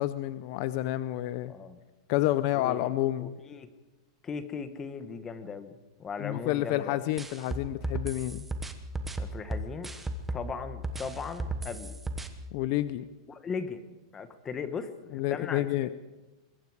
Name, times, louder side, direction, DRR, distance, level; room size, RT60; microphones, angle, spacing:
voice 1, 0.0-1.5 2.1-3.4 6.2-8.5 12.5-13.0 15.1-15.9, left 15 dB, 40° left, 13 dB, 0.6 m, -29 dB
voice 2, 1.5-1.8 2.6-2.9 3.2-3.7 4.2-7.0 9.2-9.9 10.3-12.0 13.3-13.8 14.1-15.9, left 5 dB, 15° left, 11 dB, 1.2 m, -38 dB
sound 1, 7.2-10.5 10.8-12.3, right 2 dB, 5° right, 1.1 m, -34 dB
25.0 x 22.0 x 4.8 m, 1.1 s
supercardioid pair, 170°, 3 cm